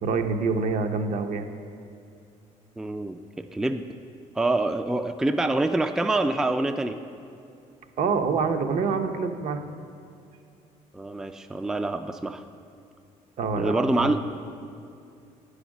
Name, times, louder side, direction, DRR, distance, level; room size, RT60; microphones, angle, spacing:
voice 1, 0.0-1.5 8.0-9.6 13.4-14.1, right 4 dB, 60° right, 6 dB, 0.7 m, -26 dB
voice 2, 2.8-3.8 4.4-7.0 10.9-12.4 13.6-14.2, right 2 dB, 5° right, 8 dB, 0.3 m, -26 dB
9.2 x 5.0 x 6.2 m, 2.5 s
cardioid pair, 90°, 15 cm